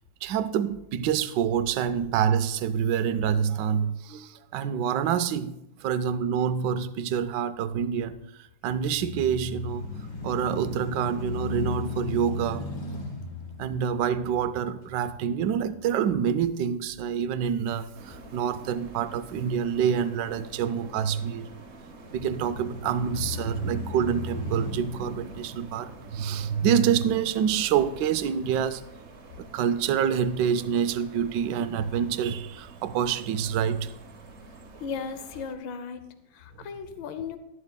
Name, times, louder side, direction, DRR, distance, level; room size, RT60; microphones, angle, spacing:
voice 1, 0.2-9.8 10.2-12.7 13.6-21.5 22.1-28.8 29.4-33.9, right 8 dB, 70° right, 1.1 m, -27 dB
sound 1, 8.8-16.9 17.4-17.5 22.0-26.5, left 4 dB, 25° left, 1.7 m, -37 dB
sound 2, 17.9-35.5, right 2 dB, 45° right, 1.0 m, -48 dB
voice 2, 34.8-37.4, left 6 dB, 80° left, 1.5 m, -36 dB
12.5 x 11.5 x 2.2 m
omnidirectional pair, 2.1 m